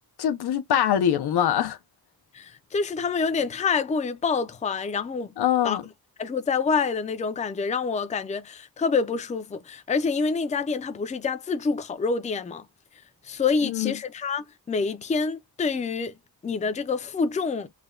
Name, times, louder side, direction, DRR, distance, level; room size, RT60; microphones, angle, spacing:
voice 1, 0.2-1.8 5.4-5.8 13.6-13.9, left 10 dB, 80° left, 0.6 m, -23 dB
voice 2, 2.3-5.3 5.6-5.8 6.2-12.6 13.2-16.1 16.4-17.7, left 5 dB, 20° left, 0.4 m, -27 dB
3.3 x 2.1 x 3.5 m
wide cardioid pair, 130°, 38 cm